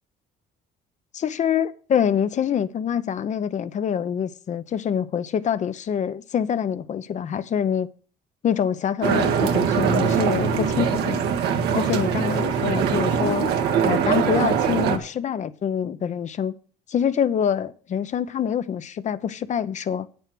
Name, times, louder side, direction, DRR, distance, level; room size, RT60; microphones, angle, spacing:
voice 1, 1.1-7.9 8.4-11.3 11.7-13.5 13.8-16.5 16.9-20.1, left 8 dB, 45° left, 0.8 m, -25 dB
sound 1, 9.0-15.0, right 7 dB, 80° right, 1.5 m, -22 dB
9.0 x 7.1 x 6.0 m
cardioid pair, 110°, 17 cm